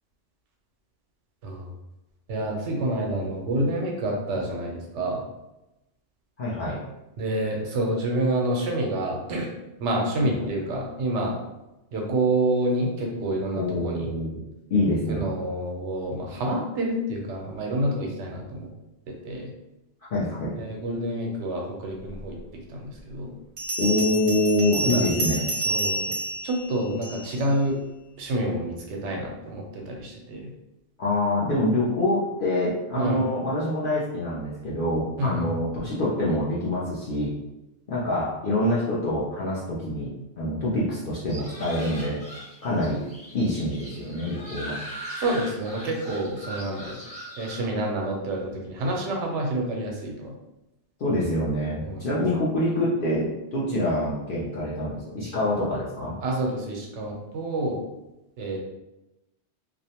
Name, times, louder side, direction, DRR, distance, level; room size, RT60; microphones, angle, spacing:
voice 1, 2.3-5.2 7.2-9.5 9.8-11.4 11.9-14.1 15.1-18.7 19.1-19.5 20.6-23.4 24.8-25.1 25.7-26.0 26.4-27.8 28.2-30.5 33.0-33.2 35.2-35.5 45.2-47.0 47.4-50.3 51.8-52.1 56.2-57.8 58.4-58.6, right 1 dB, 90° right, 0 dB, 0.9 m, -28 dB
voice 2, 6.4-6.8 10.2-10.3 13.5-14.4 14.7-15.3 20.1-20.6 23.8-25.4 31.0-37.3 37.9-42.2 42.6-43.0 43.3-44.8 51.0-56.2, left 1 dB, 55° left, -7 dB, 0.7 m, -26 dB
Bell, 22.4-22.5 23.6-27.5, right 1 dB, 55° right, 0.6 m, -29 dB
sound 1, 41.3-47.5, equal, 5° left, 0.7 m, -40 dB
2.5 x 2.0 x 2.8 m, 0.95 s
omnidirectional pair, 1.2 m